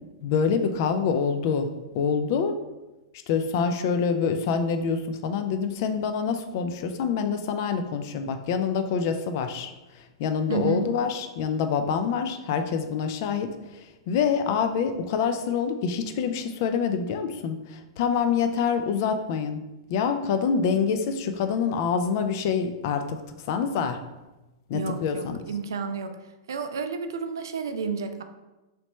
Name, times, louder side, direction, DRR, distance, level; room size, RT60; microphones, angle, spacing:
voice 1, 0.2-1.7 1.9-2.6 3.3-19.6 19.9-23.2 23.5-24.0 24.7-25.4, left 6 dB, 50° left, 8 dB, 0.4 m, -26 dB
voice 2, 10.5-10.8 24.7-26.1 26.5-28.2, right 5 dB, 70° right, 8 dB, 0.3 m, -31 dB
3.1 x 3.0 x 3.0 m, 1.1 s
figure-of-eight pair, 100°, 2 cm